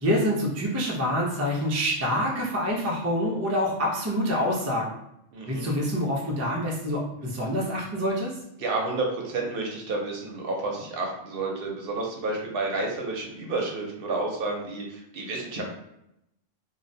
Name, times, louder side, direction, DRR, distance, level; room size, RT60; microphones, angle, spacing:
voice 1, 0.0-4.9 5.5-8.3, equal, 25° right, -4 dB, 0.3 m, -26 dB
voice 2, 5.3-5.8 8.6-15.6, right 3 dB, 65° right, 0 dB, 0.7 m, -30 dB
2.5 x 2.0 x 2.6 m, 0.82 s
omnidirectional pair, 1.1 m